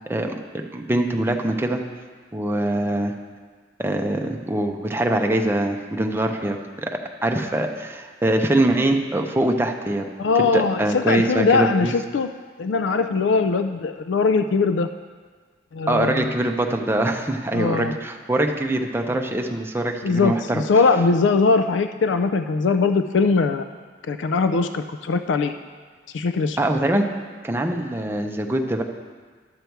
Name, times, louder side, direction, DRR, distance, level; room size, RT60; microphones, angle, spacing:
voice 1, 0.7-1.8 2.3-3.1 3.8-6.9 7.2-10.1 10.5-11.9 15.9-20.6 26.6-27.1 27.4-28.8, right 1 dB, 15° right, 3 dB, 0.6 m, -23 dB
voice 2, 10.2-12.3 12.6-14.9 15.7-16.3 17.5-17.9 20.0-23.6 24.1-25.5 26.1-26.6, left 4 dB, 75° left, 9 dB, 0.4 m, -21 dB
11.5 x 6.8 x 4.6 m, 1.5 s
head